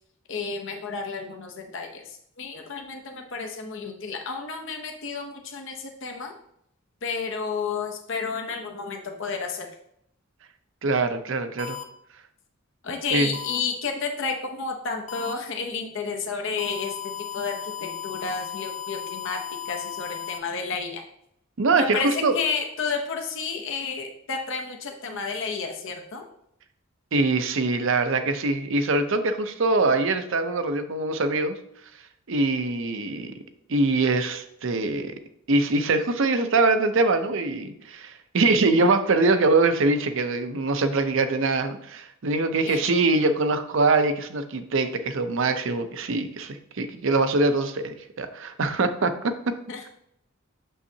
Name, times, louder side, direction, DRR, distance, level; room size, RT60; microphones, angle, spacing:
voice 1, 0.3-6.3 7.0-9.7 12.8-21.0 21.8-26.2 42.7-42.9 49.7-49.8, left 5 dB, 65° left, 3 dB, 0.8 m, -31 dB
voice 2, 10.8-11.8 13.1-13.3 21.6-22.3 27.1-31.5 32.3-33.3 33.7-35.1 35.5-49.3, right 3 dB, 65° right, 9 dB, 0.6 m, -23 dB
sound 1, 11.6-11.8 13.3-13.6 15.1-15.3 16.6-20.4, left 10 dB, 35° left, 0.4 m, -35 dB
7.3 x 5.5 x 2.8 m, 0.74 s
head